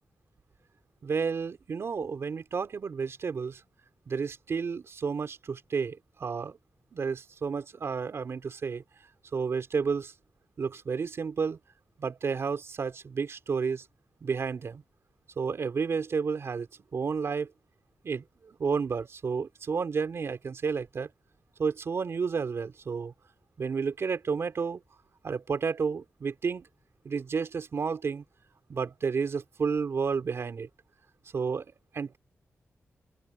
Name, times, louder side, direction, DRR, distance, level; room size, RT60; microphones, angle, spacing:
voice 1, 1.0-3.6 4.1-6.6 6.9-8.8 9.3-10.1 10.6-11.6 12.0-13.9 14.2-14.8 15.4-17.5 18.0-21.1 21.6-23.1 23.6-24.8 25.2-26.7 27.0-28.2 28.7-30.7 31.3-31.7 31.9-32.2, right 5 dB, 60° right, 3.7 m, -31 dB
open air
wide cardioid pair, 125°, 5 cm